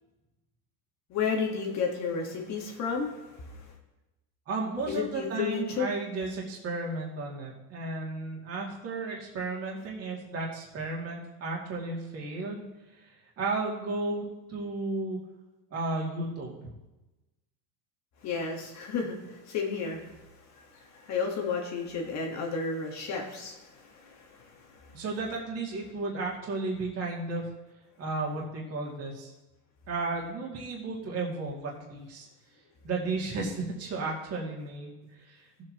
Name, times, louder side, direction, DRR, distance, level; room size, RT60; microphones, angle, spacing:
voice 1, 1.1-3.7 4.9-5.9 18.2-20.2 20.5-24.9, left 5 dB, 35° left, 1 dB, 1.6 m, -33 dB
voice 2, 4.5-12.6 12.9-15.2 15.7-16.7 24.9-27.4 28.0-29.3 29.9-32.3 32.8-35.6, right 3 dB, 30° right, -2 dB, 2.5 m, -34 dB
17.5 x 7.6 x 3.0 m, 1.0 s
supercardioid pair, 150°, 46 cm